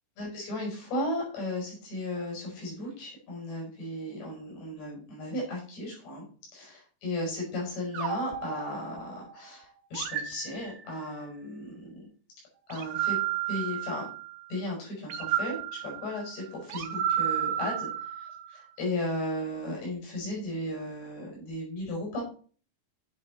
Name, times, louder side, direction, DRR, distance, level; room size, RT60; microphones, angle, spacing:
voice 1, 0.2-6.2 6.5-12.0 12.7-13.2 13.5-14.1 14.5-17.9 18.5-22.2, left 1 dB, 75° left, -2 dB, 7.8 m, -35 dB
sound 1, 7.9-9.3 9.9-11.2 12.7-14.4 15.1-18.6, right 10 dB, 70° right, 3.0 m, -32 dB
11.0 x 8.0 x 4.0 m, 0.40 s
omnidirectional pair, 5.0 m